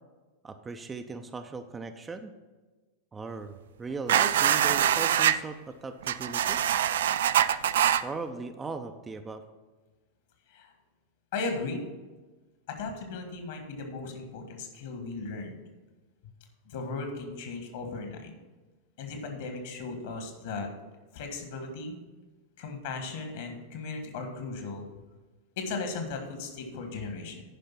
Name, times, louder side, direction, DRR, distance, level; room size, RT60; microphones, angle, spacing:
voice 1, 0.4-2.3 3.1-6.6 8.0-9.4, right 4 dB, 15° right, 7 dB, 0.6 m, -38 dB
sound 1, 4.1-5.4 6.0-8.0, right 10 dB, 60° right, 0.3 m, -24 dB
voice 2, 11.3-11.8 12.7-15.5 16.6-18.3 19.0-20.7 21.1-22.0 22.6-24.9 25.6-27.4, left 3 dB, 55° left, 5 dB, 1.7 m, -36 dB
10.5 x 5.4 x 5.9 m, 1.3 s
figure-of-eight pair, 90°, 0 cm